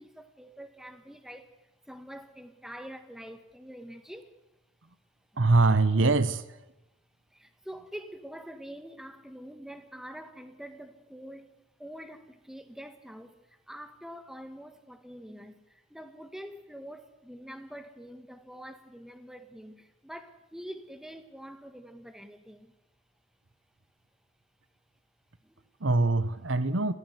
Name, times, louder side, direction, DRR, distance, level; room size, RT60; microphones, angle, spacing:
voice 1, 0.0-4.4 5.3-5.4 7.3-22.7 25.4-25.6, equal, ahead, 1.6 m, -45 dB
voice 2, 5.4-6.6 25.8-26.9, right 3 dB, 70° right, 1.1 m, -23 dB
21.5 x 15.0 x 8.1 m
head